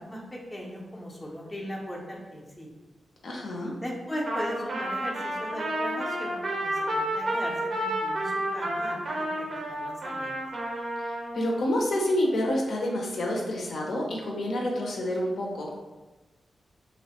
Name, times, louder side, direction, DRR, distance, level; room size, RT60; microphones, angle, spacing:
voice 1, 0.0-2.7 3.8-10.4, equal, 15° left, -3 dB, 0.5 m, -38 dB
voice 2, 3.2-3.7 11.0-15.7, left 1 dB, 70° left, -2 dB, 0.5 m, -28 dB
Trumpet, 4.3-11.4, right 1 dB, 50° right, 0.5 m, -30 dB
2.8 x 2.1 x 2.8 m, 1.2 s
wide cardioid pair, 115°, 0 cm